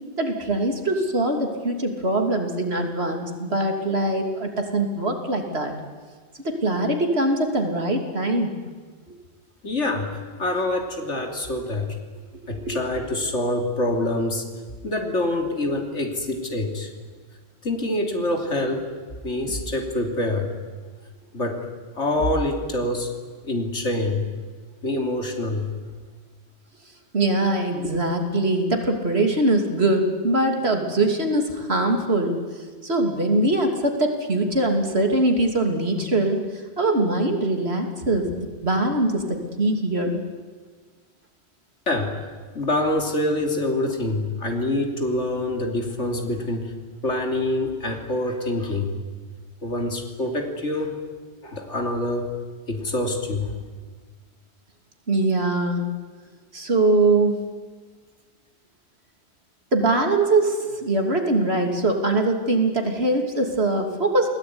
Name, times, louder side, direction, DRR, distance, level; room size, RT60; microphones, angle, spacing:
voice 1, 0.2-5.7 6.4-8.5 9.1-9.2 12.6-12.8 27.1-40.2 55.1-55.9 56.5-57.4 59.7-64.3, right 2 dB, 60° right, 4 dB, 3.3 m, -22 dB
voice 2, 9.6-10.1 10.4-11.9 12.5-14.4 14.8-16.9 17.6-18.9 19.2-20.5 21.3-21.6 22.0-23.1 23.4-24.2 24.8-25.6 41.9-42.2 42.5-46.7 47.0-48.9 49.6-50.9 51.4-52.3 52.7-53.5, left 1 dB, 80° left, 3 dB, 3.5 m, -25 dB
28.5 x 19.5 x 9.8 m, 1.5 s
omnidirectional pair, 1.2 m